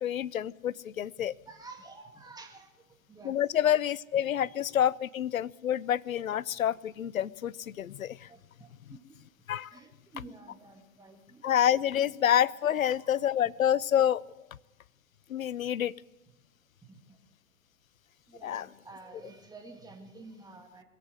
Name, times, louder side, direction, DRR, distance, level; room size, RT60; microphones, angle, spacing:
voice 1, 0.0-1.3 3.2-8.3 9.5-9.7 11.4-14.2 15.3-15.9 18.4-18.7, left 10 dB, 85° left, 22 dB, 0.5 m, -28 dB
voice 2, 1.2-3.4 4.3-4.5 4.7-4.8 6.1-6.3 8.3-9.0 9.7-11.5 12.8-13.1 13.4-13.5 16.8-17.2 18.3-20.8, right 3 dB, 10° right, 3 dB, 2.0 m, -51 dB
21.5 x 8.3 x 7.8 m, 1.1 s
figure-of-eight pair, 105°, 40 cm